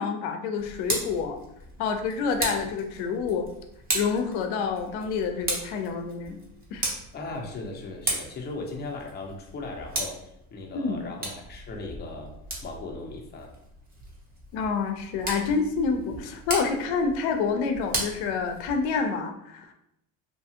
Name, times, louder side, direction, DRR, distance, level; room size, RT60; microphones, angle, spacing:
voice 1, 0.0-1.4 1.8-3.5 3.9-6.4 6.7-6.9 10.7-11.1 14.5-19.7, left 5 dB, 65° left, 6 dB, 0.6 m, -28 dB
Tick, 0.6-19.0, right 2 dB, 20° right, 0.8 m, -36 dB
voice 2, 7.1-12.3 12.6-13.5, left 3 dB, 25° left, 1 dB, 0.6 m, -37 dB
2.8 x 2.3 x 2.8 m, 0.79 s
supercardioid pair, 110°, 41 cm